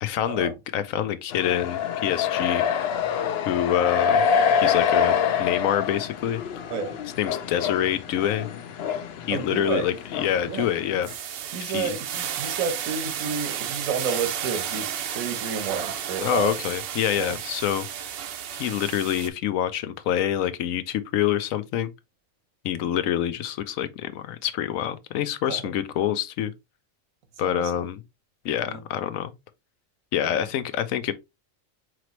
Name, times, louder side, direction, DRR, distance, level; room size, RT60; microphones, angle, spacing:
voice 1, 0.0-2.7 3.4-4.2 4.6-6.4 7.2-8.5 9.3-11.1 11.6-11.9 16.2-17.9 18.5-21.9 22.6-26.5 27.4-28.0 28.4-29.3 30.1-31.1, left 10 dB, 85° left, 1.0 m, -26 dB
sound 1, 1.3-11.1, left 7 dB, 60° left, 0.7 m, -26 dB
voice 2, 9.3-9.8 10.5-10.7 11.5-16.5 17.1-17.3 25.5-25.6 27.4-27.6 28.7-28.8 30.2-30.5, right 6 dB, 85° right, 1.3 m, -31 dB
sound 2, 9.5-9.9 10.3-19.3, right 9 dB, 65° right, 0.6 m, -33 dB
4.9 x 3.1 x 3.0 m
omnidirectional pair, 1.4 m